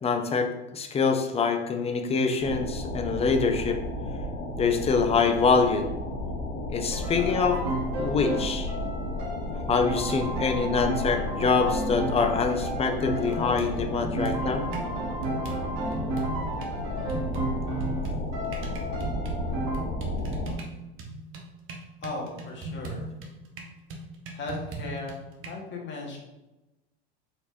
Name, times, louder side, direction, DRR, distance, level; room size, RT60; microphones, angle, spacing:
voice 1, 0.0-3.8 4.6-5.9 6.7-7.6 8.0-8.7 9.7-14.6, left 5 dB, 20° left, 5 dB, 0.6 m, -25 dB
sound 1, 2.4-20.5, left 1 dB, 50° left, 1.1 m, -33 dB
sound 2, 6.9-19.8, right 2 dB, 55° right, 1.3 m, -33 dB
sound 3, 13.3-14.9 15.2-16.7 17.1-25.5, right 2 dB, 40° right, 0.9 m, -38 dB
voice 2, 22.0-23.1 24.3-25.2 25.4-26.2, left 2 dB, 35° left, -1 dB, 1.5 m, -37 dB
4.2 x 4.2 x 2.7 m, 1.0 s
hypercardioid pair, 90°, 32 cm